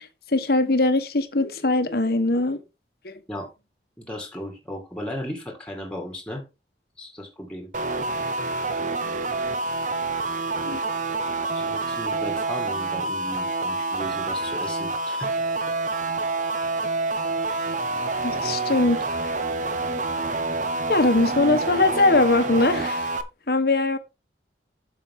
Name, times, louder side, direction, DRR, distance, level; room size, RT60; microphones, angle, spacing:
voice 1, 0.0-2.6 3.0-3.1 10.6-10.8 18.2-19.0 20.9-23.1 23.5-24.0, left 2 dB, 55° left, 1.1 m, -21 dB
voice 2, 4.0-6.4 7.0-7.7 11.5-15.3, equal, 5° left, 1.9 m, -36 dB
sound 1, 7.7-23.2, right 3 dB, 45° right, 0.9 m, -27 dB
8.5 x 6.9 x 3.6 m
head